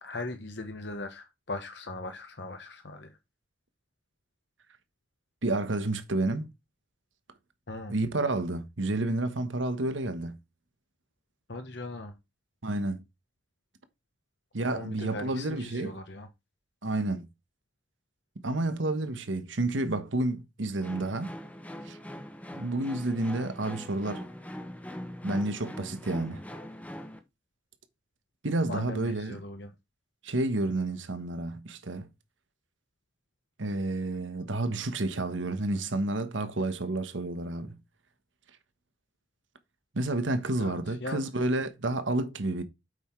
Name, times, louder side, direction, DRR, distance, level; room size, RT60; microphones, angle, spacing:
voice 1, 0.0-3.2 7.7-7.9 11.5-12.2 14.6-16.3 28.7-29.7 40.6-41.2, left 2 dB, 60° left, 1.1 m, -39 dB
voice 2, 5.4-6.5 7.9-10.4 12.6-13.0 14.5-16.0 16.8-17.3 18.4-21.3 21.8-22.0 22.5-24.3 25.2-26.4 28.4-29.4 30.2-32.1 33.6-37.8 39.9-42.6, right 2 dB, 80° right, 1.2 m, -30 dB
sound 1, 20.8-27.2, equal, 10° left, 0.9 m, -42 dB
7.9 x 5.8 x 4.5 m
head